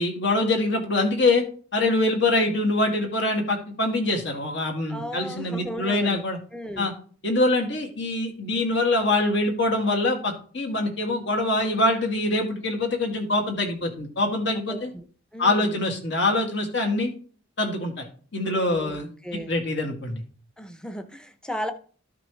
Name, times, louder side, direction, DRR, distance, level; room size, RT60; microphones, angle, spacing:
voice 1, 0.0-1.4 1.7-6.4 6.8-6.9 7.2-14.9 15.4-17.1 17.6-18.1 18.3-20.2, left 2 dB, 65° left, 2 dB, 2.2 m, -24 dB
voice 2, 4.9-6.2 6.5-6.9 14.7-15.0 15.3-15.8 18.7-19.5 20.6-21.7, equal, 5° left, 8 dB, 0.7 m, -35 dB
13.5 x 5.9 x 3.2 m, 0.44 s
head